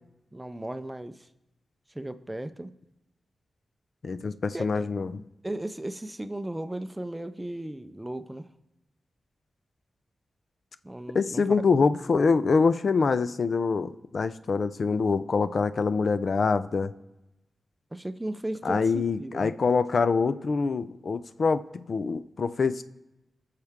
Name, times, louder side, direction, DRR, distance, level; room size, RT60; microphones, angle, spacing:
voice 1, 0.3-1.3 1.9-2.7 4.5-4.9 5.4-8.5 10.8-11.6 17.9-19.5, right 1 dB, 10° right, 11 dB, 0.5 m, -36 dB
voice 2, 4.0-5.2 11.1-16.9 18.6-22.8, left 4 dB, 55° left, 13 dB, 0.4 m, -25 dB
20.0 x 6.7 x 3.6 m, 0.97 s
wide cardioid pair, 110°, 0 cm